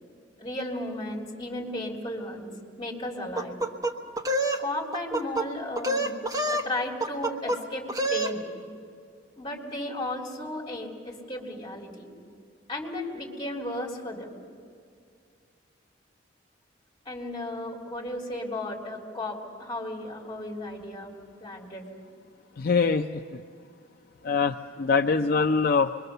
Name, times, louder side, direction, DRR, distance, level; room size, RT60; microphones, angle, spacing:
voice 1, 0.4-2.5 2.8-3.6 4.6-6.1 6.5-8.4 9.4-12.1 12.7-14.3 17.1-21.1 21.4-21.9, left 1 dB, 25° left, -2 dB, 3.6 m, -34 dB
sound 1, 3.4-4.6 4.9-5.5 5.8-6.7 7.0-7.6 7.9-8.3, right 1 dB, 20° right, 1.4 m, -27 dB
voice 2, 22.6-23.1 23.3-23.4 24.2-25.9, left 5 dB, 55° left, 5 dB, 0.5 m, -23 dB
25.5 x 22.5 x 6.7 m, 2.3 s
head